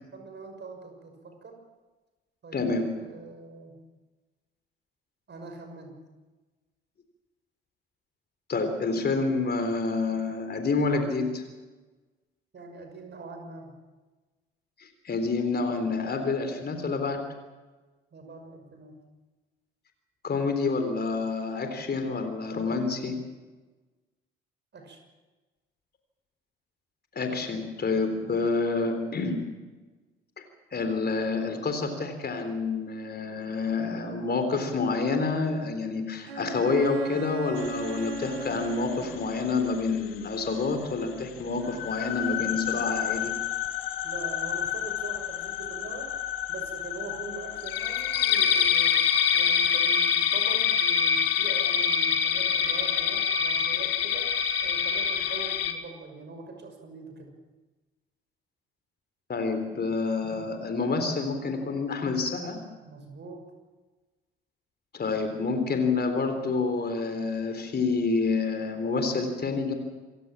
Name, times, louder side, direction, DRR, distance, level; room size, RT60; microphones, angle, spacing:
voice 1, 0.1-1.6 2.4-3.8 5.3-6.0 12.5-13.7 18.1-19.0 24.7-25.0 44.0-46.1 46.5-49.0 49.3-57.3 62.9-63.4, right 3 dB, 35° right, 4 dB, 6.2 m, -42 dB
voice 2, 2.5-2.8 8.5-11.4 14.8-17.2 20.2-23.1 27.2-29.4 30.4-30.5 30.7-43.3 59.3-62.6 64.9-69.7, left 4 dB, 35° left, 6 dB, 3.8 m, -28 dB
Bowed string instrument, 36.3-39.8, right 3 dB, 85° right, 1.2 m, -37 dB
sound 1, 37.6-39.2 39.7-39.8 40.2-40.3 41.7-55.7, left 8 dB, 75° left, 1.4 m, -26 dB
27.5 x 16.0 x 7.4 m, 1.2 s
figure-of-eight pair, 50°, 29 cm